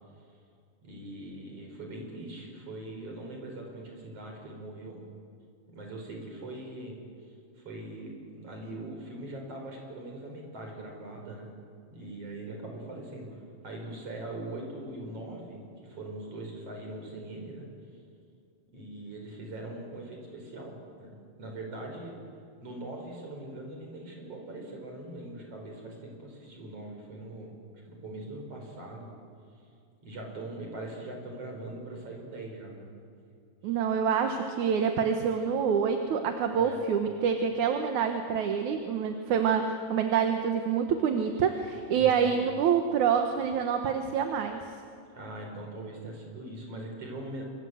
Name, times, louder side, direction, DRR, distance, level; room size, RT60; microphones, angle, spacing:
voice 1, 0.8-5.0 5.7-7.0 7.6-11.5 11.9-13.4 13.6-17.7 18.7-22.1 22.6-27.5 27.9-29.1 30.0-32.9 36.6-36.8 42.0-42.3 45.1-47.4, right 1 dB, 40° right, 1 dB, 5.9 m, -41 dB
voice 2, 33.6-44.6, right 7 dB, 65° right, 5 dB, 2.5 m, -27 dB
26.5 x 24.0 x 7.9 m, 2.4 s
omnidirectional pair, 4.0 m